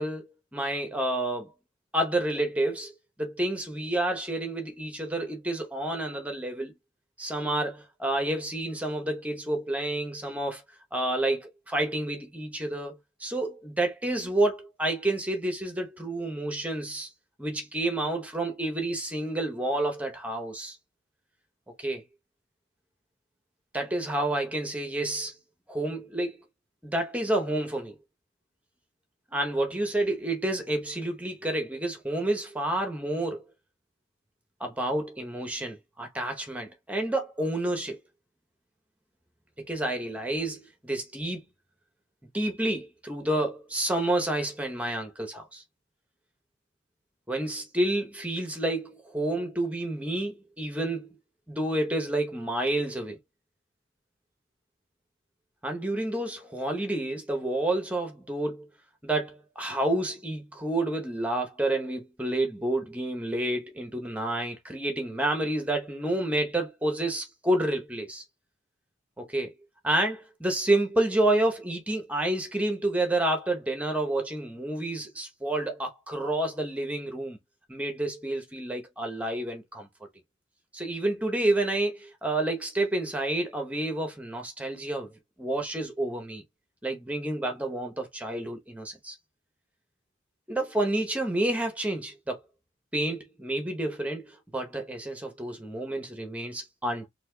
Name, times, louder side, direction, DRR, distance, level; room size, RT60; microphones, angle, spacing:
voice 1, 0.0-1.5 1.9-6.7 7.2-10.6 10.9-17.1 17.4-20.8 21.8-22.0 23.7-25.4 25.7-26.4 26.8-27.9 29.3-33.4 34.6-38.0 39.6-41.4 42.3-45.6 47.3-51.2 51.5-53.2 55.6-58.7 59.0-68.2 69.2-69.5 69.8-77.4 77.7-79.9 80.7-85.1 85.4-86.4 86.8-89.2 90.5-92.4 92.9-97.1, right 1 dB, 5° right, 0.8 m, -29 dB
4.1 x 2.7 x 2.2 m
head